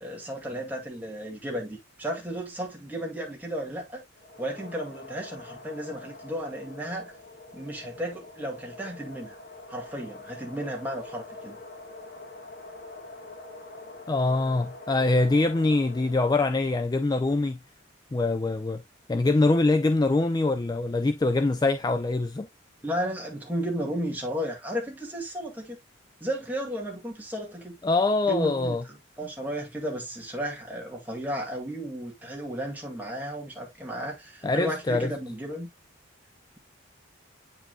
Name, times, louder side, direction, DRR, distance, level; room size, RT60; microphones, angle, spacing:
voice 1, 0.0-4.0 4.4-7.1 7.5-9.4 9.7-11.6 22.8-25.8 26.2-27.8 28.3-35.7, equal, 10° right, 2.1 m, -34 dB
sound 1, 4.1-16.6, left 2 dB, 45° left, 1.5 m, -45 dB
voice 2, 14.1-17.6 18.1-18.8 19.1-22.5 27.8-28.8 34.4-35.1, left 2 dB, 20° left, 0.3 m, -24 dB
8.7 x 4.8 x 2.3 m
head